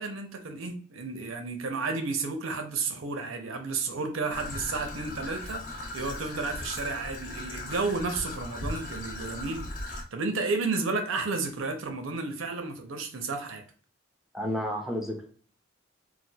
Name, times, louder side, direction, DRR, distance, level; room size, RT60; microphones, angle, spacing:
voice 1, 0.0-13.6, right 3 dB, 75° right, 0.6 m, -32 dB
Traffic noise roadway noise / Trickle dribble, 4.3-10.0, left 2 dB, 40° left, 0.6 m, -38 dB
voice 2, 14.3-15.3, equal, ahead, 0.4 m, -31 dB
4.1 x 2.3 x 2.2 m
head